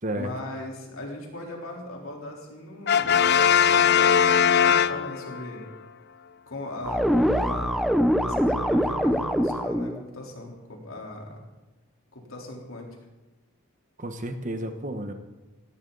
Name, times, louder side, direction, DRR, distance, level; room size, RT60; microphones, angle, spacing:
voice 1, 0.1-5.6 6.5-11.4 12.1-12.9, left 1 dB, 70° left, 0 dB, 3.7 m, -38 dB
Brass instrument, 2.9-5.5, left 7 dB, 50° left, 0.4 m, -20 dB
sound 1, 6.8-10.0, equal, ahead, 0.7 m, -23 dB
voice 2, 14.0-15.1, right 1 dB, 35° right, 7 dB, 1.2 m, -31 dB
18.0 x 17.5 x 4.0 m, 1.1 s
head